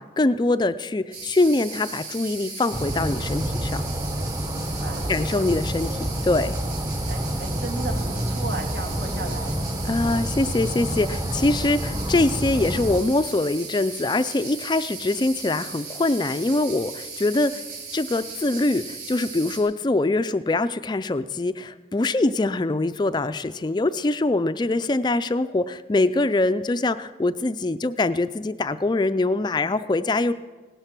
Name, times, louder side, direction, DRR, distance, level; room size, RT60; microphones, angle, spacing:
voice 1, 0.0-3.8 5.1-6.6 9.8-17.6 17.9-30.3, left 2 dB, 25° left, 12 dB, 0.4 m, -23 dB
sound 1, 1.1-19.6, right 5 dB, 55° right, 5.3 m, -37 dB
sound 2, 2.7-13.0, equal, 20° right, 0.9 m, -28 dB
voice 2, 4.6-5.1 7.1-9.6, right 3 dB, 70° right, 2 dB, 2.5 m, -35 dB
17.5 x 12.5 x 6.0 m, 1.3 s
head